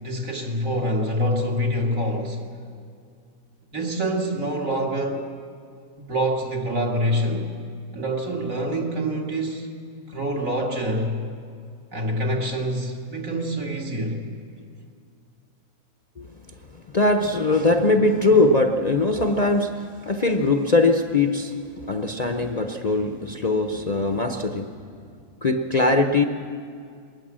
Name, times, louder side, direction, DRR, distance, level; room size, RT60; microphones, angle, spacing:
voice 1, 0.0-2.4 3.7-5.3 6.1-7.5 7.9-9.7 10.1-11.3 11.9-14.2, equal, 65° right, -1 dB, 2.7 m, -26 dB
voice 2, 16.7-24.8 25.4-26.2, left 2 dB, 35° left, 4 dB, 0.7 m, -21 dB
20.5 x 18.5 x 7.5 m, 2.3 s
omnidirectional pair, 1.5 m